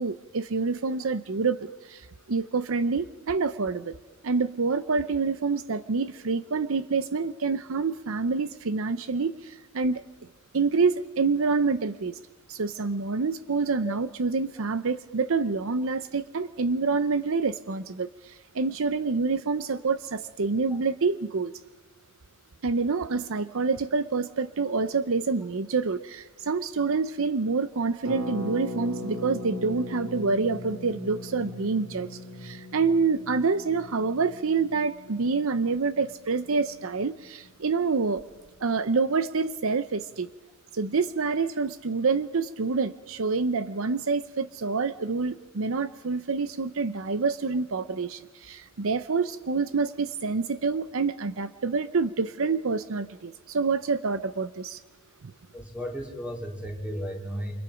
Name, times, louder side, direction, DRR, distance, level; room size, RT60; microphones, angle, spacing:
voice 1, 0.0-3.9 4.2-10.0 10.5-12.2 12.5-21.5 22.6-38.2 38.6-40.3 40.7-54.8 55.2-55.3, right 4 dB, 65° right, 13 dB, 0.7 m, -27 dB
Harp, 28.0-37.7 37.9-38.0 38.2-38.5, left 1 dB, 85° right, 2.1 m, -39 dB
voice 2, 55.5-57.5, equal, 5° right, 0 dB, 3.7 m, -34 dB
29.0 x 25.0 x 5.1 m, 1.1 s
head